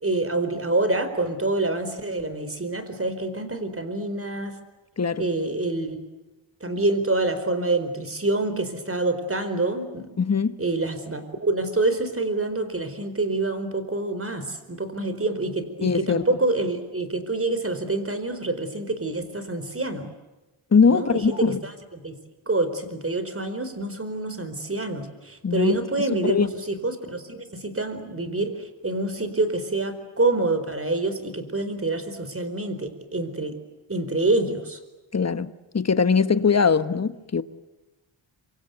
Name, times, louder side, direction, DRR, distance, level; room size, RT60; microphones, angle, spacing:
voice 1, 0.0-4.6 5.2-6.0 6.6-10.1 10.6-20.1 20.9-22.1 22.5-33.6 33.9-34.8 35.3-35.4, right 2 dB, 25° right, 4.4 m, -27 dB
voice 2, 5.0-5.3 10.2-10.6 15.8-16.2 20.7-21.6 25.4-25.8 26.2-26.5 35.1-35.5 35.7-37.4, left 5 dB, 30° left, 1.3 m, -21 dB
27.0 x 25.0 x 8.0 m
cardioid pair, 85°, 50 cm